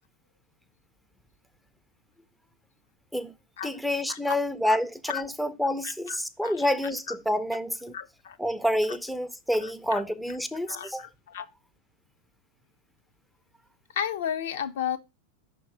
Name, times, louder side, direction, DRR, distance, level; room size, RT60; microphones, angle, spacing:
voice 1, 3.6-7.9 8.4-11.1, left 1 dB, ahead, 0.5 m, -28 dB
voice 2, 5.8-6.6 7.9-8.4 9.6-10.0 10.7-11.5 13.9-15.0, left 9 dB, 60° left, 0.5 m, -33 dB
5.8 x 3.6 x 4.9 m
figure-of-eight pair, 90°, 0 cm